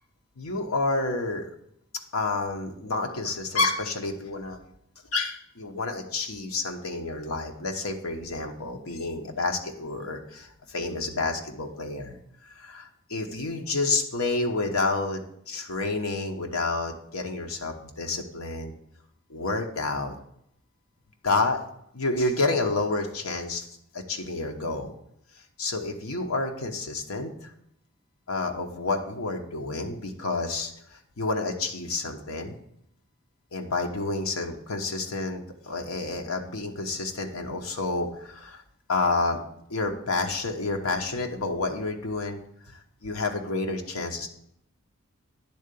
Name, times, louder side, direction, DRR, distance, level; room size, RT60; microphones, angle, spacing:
voice 1, 0.4-1.5 2.1-4.6 5.1-12.2 12.5-18.7 19.3-20.1 21.2-21.6 21.9-23.7 23.9-24.9 25.6-27.5 28.3-32.6 33.5-38.6 38.9-39.4 39.7-42.4 43.0-44.3, left 3 dB, 80° left, 3 dB, 1.0 m, -29 dB
10.0 x 3.8 x 6.8 m, 0.74 s
head